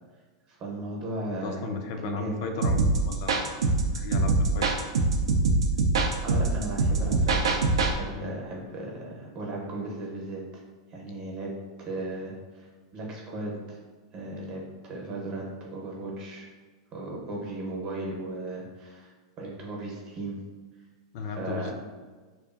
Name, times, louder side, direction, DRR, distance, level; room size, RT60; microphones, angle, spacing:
voice 1, 0.5-1.7 2.0-2.4 6.2-7.6 7.9-10.6 10.9-11.5 11.8-13.8 14.1-16.5 16.9-20.4 21.4-21.7, right 2 dB, 40° right, -2 dB, 0.8 m, -36 dB
voice 2, 1.3-4.7 8.1-8.3 21.1-21.7, left 4 dB, 55° left, 4 dB, 0.3 m, -35 dB
sound 1, 2.6-7.9, right 3 dB, 85° right, 0.3 m, -24 dB
2.6 x 2.3 x 2.4 m, 1.4 s
hypercardioid pair, 115°, 3 cm